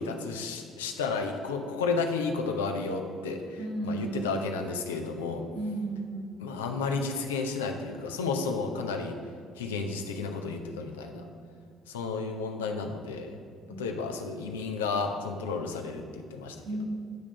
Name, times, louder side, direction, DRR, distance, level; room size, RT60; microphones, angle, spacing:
voice 1, 0.0-5.4 6.4-9.2 9.6-11.2 11.9-13.4 13.7-16.6, left 4 dB, 75° left, 5 dB, 0.5 m, -32 dB
voice 2, 3.6-4.4 5.5-6.4 10.9-11.3 13.7-13.8 16.6-16.8, right 2 dB, 55° right, -3 dB, 1.7 m, -35 dB
9.3 x 3.6 x 5.6 m, 2.2 s
figure-of-eight pair, 50°, 0 cm